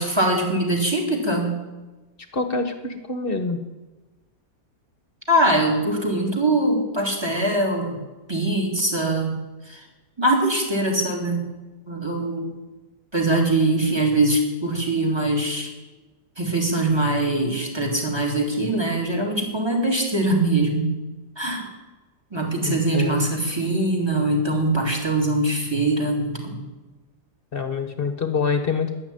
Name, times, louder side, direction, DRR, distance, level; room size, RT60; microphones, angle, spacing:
voice 1, 0.0-1.6 5.3-8.0 8.3-9.3 9.7-9.9 10.2-11.4 11.9-12.5 13.1-15.7 16.4-20.9 21.4-21.7 22.3-26.6, right 2 dB, 15° right, 3 dB, 3.1 m, -22 dB
voice 2, 2.3-3.6 22.6-23.3 27.5-28.9, left 4 dB, 35° left, 8 dB, 1.4 m, -25 dB
12.0 x 10.5 x 9.3 m, 1.2 s
omnidirectional pair, 2.0 m